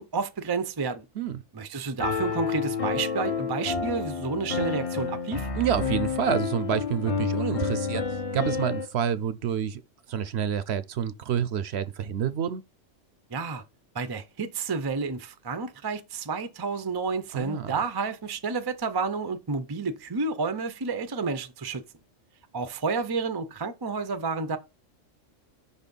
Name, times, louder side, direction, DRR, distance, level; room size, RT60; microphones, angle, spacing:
voice 1, 0.0-1.1 1.5-5.5 13.3-13.6 13.9-21.8 22.5-24.6, right 4 dB, 35° right, 0.4 m, -30 dB
Piano, 2.0-8.8, left 5 dB, 35° left, 0.6 m, -29 dB
voice 2, 5.6-8.0 8.3-9.8 10.1-12.6 17.3-17.8, right 8 dB, 65° right, 0.8 m, -28 dB
5.5 x 4.1 x 5.3 m
omnidirectional pair, 1.3 m